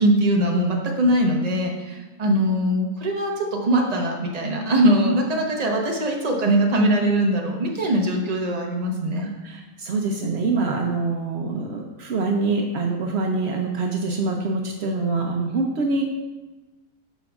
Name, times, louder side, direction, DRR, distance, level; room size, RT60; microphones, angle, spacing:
voice 1, 0.0-9.3, right 1 dB, 35° right, 0 dB, 0.7 m, -21 dB
voice 2, 9.2-16.0, right 3 dB, 80° right, 2 dB, 0.5 m, -25 dB
12.0 x 5.0 x 2.4 m, 1.1 s
omnidirectional pair, 1.9 m